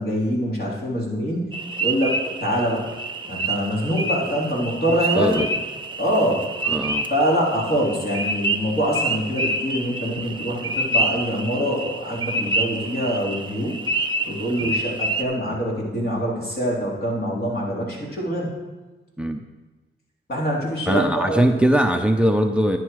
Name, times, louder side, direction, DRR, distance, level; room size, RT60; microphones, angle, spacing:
voice 1, 0.0-2.9 3.2-5.4 6.0-6.5 7.1-13.8 14.3-18.6 20.3-21.6, equal, 50° left, -4 dB, 3.9 m, -24 dB
sound 1, 1.5-15.2, right 2 dB, 25° right, 1.0 m, -27 dB
voice 2, 6.7-7.1 14.6-14.7 19.2-19.4 20.9-22.8, equal, 5° right, 6 dB, 0.7 m, -20 dB
11.0 x 9.9 x 4.8 m, 1.2 s
cardioid pair, 70°, 20 cm